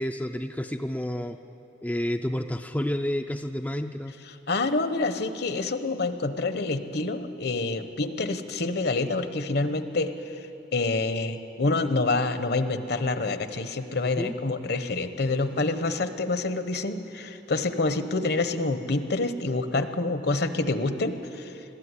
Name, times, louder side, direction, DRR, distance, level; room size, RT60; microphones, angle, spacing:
voice 1, 0.0-1.4 1.8-4.2 14.2-14.3, left 1 dB, 10° left, 5 dB, 0.4 m, -30 dB
voice 2, 4.3-10.5 10.7-21.6, left 3 dB, 55° left, 10 dB, 0.9 m, -27 dB
21.0 x 13.5 x 9.7 m, 2.9 s
head